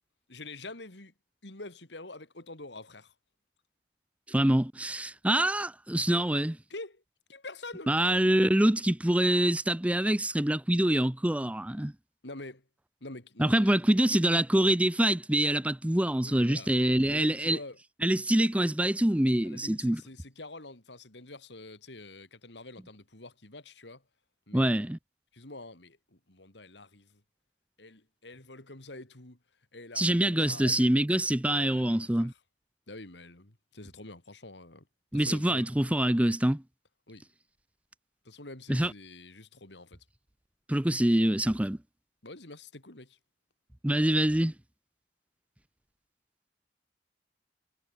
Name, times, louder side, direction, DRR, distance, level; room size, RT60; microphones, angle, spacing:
voice 1, 0.3-1.1 1.4-3.1 6.7-7.0 7.3-7.9 12.2-12.7 13.0-13.8 16.2-16.7 17.1-17.8 19.4-24.0 24.5-24.7 25.3-27.2 27.8-29.4 29.7-31.0 31.6-32.3 32.9-34.9 35.1-35.7 37.1-37.2 38.2-40.1 42.2-43.2, left 2 dB, 75° left, 3.5 m, -46 dB
voice 2, 4.3-6.6 7.9-11.9 13.4-17.6 18.0-20.0 24.5-25.0 30.0-32.3 35.1-36.6 38.7-38.9 40.7-41.8 43.8-44.5, right 1 dB, 5° right, 0.6 m, -25 dB
head